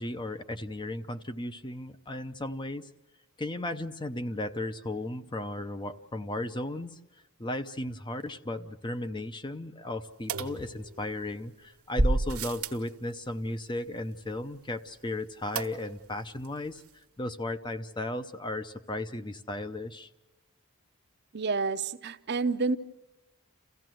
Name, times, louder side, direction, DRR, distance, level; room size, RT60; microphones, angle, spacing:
voice 1, 0.0-2.9 3.4-7.0 7.4-16.8 17.2-20.1, left 1 dB, 20° left, 9 dB, 0.7 m, -35 dB
sound 1, 10.3-11.3 12.0-12.9 15.6-16.1 16.4-16.5 16.8-16.9, right 2 dB, 80° right, 1.3 m, -30 dB
voice 2, 21.3-22.8, right 4 dB, 50° right, 10 dB, 0.7 m, -29 dB
28.5 x 15.5 x 7.7 m, 1.1 s
head